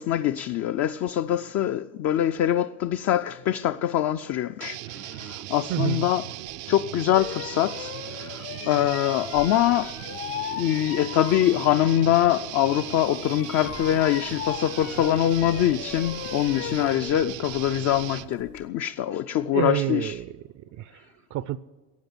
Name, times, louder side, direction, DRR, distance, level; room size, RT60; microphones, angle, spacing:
voice 1, 0.0-4.8 5.2-6.2 6.7-7.9 8.2-8.4 8.7-10.1 10.5-20.2, left 11 dB, 45° left, 0.5 m, -24 dB
sound 1, 4.6-18.3, right 16 dB, 80° right, 0.7 m, -38 dB
voice 2, 5.7-6.1 19.5-21.6, right 13 dB, 45° right, 0.5 m, -29 dB
sound 2, 6.5-6.6 7.1-12.3 12.5-18.7, left 10 dB, 75° left, 1.8 m, -38 dB
14.5 x 9.1 x 9.7 m
supercardioid pair, 100°, 40 cm